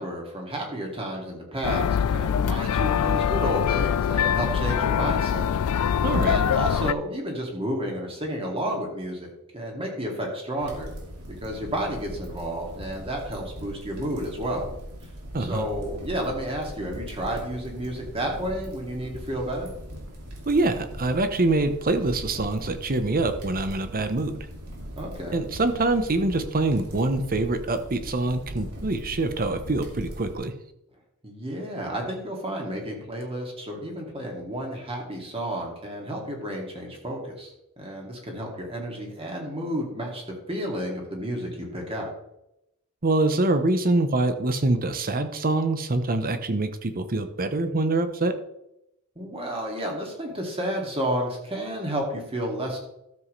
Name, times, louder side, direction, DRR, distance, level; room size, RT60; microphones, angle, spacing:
voice 1, 0.0-5.8 6.2-10.9 11.4-14.7 15.4-19.7 25.0-25.4 31.2-40.2 40.5-42.1 49.2-52.8, right 1 dB, 25° right, 0 dB, 2.5 m, -31 dB
sound 1, 1.6-6.9, left 8 dB, 75° left, 0.4 m, -23 dB
voice 2, 6.0-6.4 15.3-15.7 20.5-24.5 25.3-30.5 43.0-48.3, right 2 dB, 40° right, 9 dB, 0.9 m, -25 dB
sound 2, 10.6-30.4, equal, 85° right, 2.5 m, -40 dB
13.0 x 7.4 x 3.3 m, 0.85 s
head